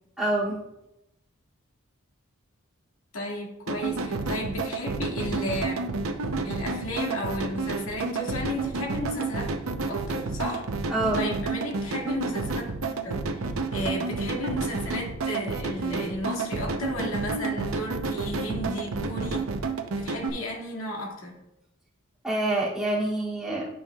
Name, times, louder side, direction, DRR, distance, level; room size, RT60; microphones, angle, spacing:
voice 1, 0.2-0.6 10.9-11.2 22.2-23.7, right 2 dB, 5° right, -8 dB, 2.4 m, -26 dB
voice 2, 3.1-5.9 6.4-9.5 9.8-12.7 13.0-13.5 13.7-19.5 19.9-21.4, left 1 dB, 85° left, -1 dB, 2.1 m, -34 dB
sound 1, 3.7-20.3, right 3 dB, 90° right, 0.7 m, -30 dB
12.0 x 5.6 x 2.3 m, 0.90 s
head